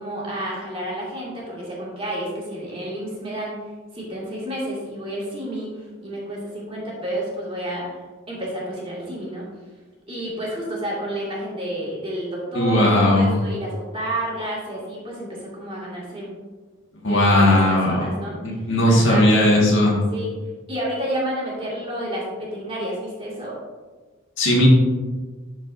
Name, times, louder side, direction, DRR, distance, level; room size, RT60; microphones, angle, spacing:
voice 1, 0.0-3.5 3.9-8.0 8.3-9.5 10.1-16.3 17.1-19.3 20.1-20.3 20.7-23.5, right 1 dB, 25° right, -5 dB, 2.2 m, -30 dB
voice 2, 12.5-13.4 17.0-18.0 18.7-20.0 24.4-24.7, left 1 dB, 60° left, -3 dB, 1.8 m, -17 dB
12.0 x 4.7 x 2.6 m, 1.3 s
head